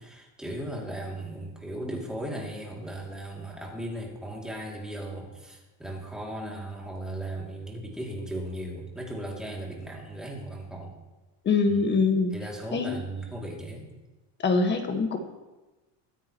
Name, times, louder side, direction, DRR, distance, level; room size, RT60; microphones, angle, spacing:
voice 1, 0.0-10.9 11.7-11.9 12.3-13.9, right 1 dB, ahead, -2 dB, 2.7 m, -37 dB
voice 2, 11.4-12.3 12.7-13.0 14.4-15.2, left 4 dB, 30° left, 5 dB, 1.6 m, -24 dB
23.0 x 9.7 x 3.1 m, 1.1 s
cardioid pair, 150°, 38 cm